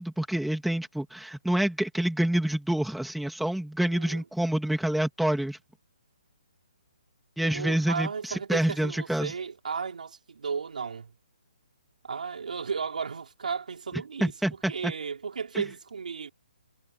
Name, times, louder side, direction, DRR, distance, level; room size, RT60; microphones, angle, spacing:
voice 1, 0.0-5.6 7.4-9.3 14.2-14.9, right 1 dB, ahead, 2.6 m, -27 dB
voice 2, 3.8-4.2 7.4-11.1 12.0-16.3, right 5 dB, 60° right, 4.3 m, -34 dB
hypercardioid pair, 175°, 5 cm